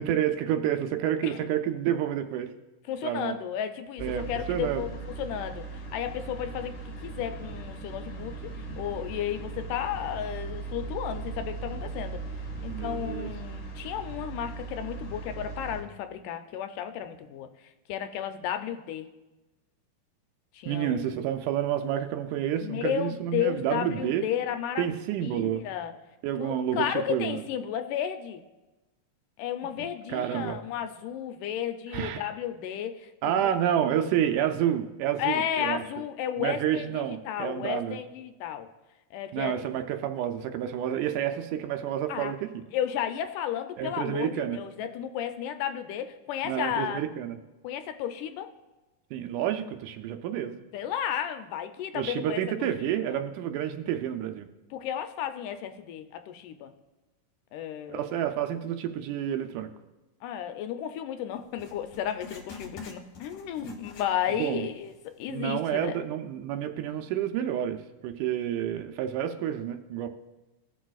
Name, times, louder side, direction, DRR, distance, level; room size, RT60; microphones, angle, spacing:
voice 1, 0.0-2.5 3.0-3.4 4.0-4.8 12.7-13.3 20.7-24.3 24.8-25.7 26.2-27.4 30.1-30.6 31.9-32.2 33.2-35.8 36.4-38.0 39.3-42.6 43.8-44.6 46.4-47.4 49.1-50.6 51.9-54.5 57.9-59.7 63.6-63.8 64.4-64.7 65.3-70.1, right 10 dB, 80° right, 7 dB, 2.0 m, -29 dB
voice 2, 2.9-12.2 12.6-17.5 17.9-19.1 20.5-21.2 22.6-26.0 26.4-28.4 29.4-33.5 35.2-38.7 39.1-39.8 42.1-42.3 42.7-47.0 47.6-48.5 50.7-52.4 52.8-53.2 54.7-56.7 57.5-58.1 60.2-66.0, left 10 dB, 80° left, 8 dB, 2.1 m, -33 dB
sound 1, 4.0-15.8, right 3 dB, 30° left, 2.2 m, -38 dB
Writing, 61.5-64.6 64.9-65.0 65.7-65.8, left 5 dB, 65° left, 2.0 m, -46 dB
17.0 x 6.2 x 2.4 m, 1.1 s
omnidirectional pair, 3.7 m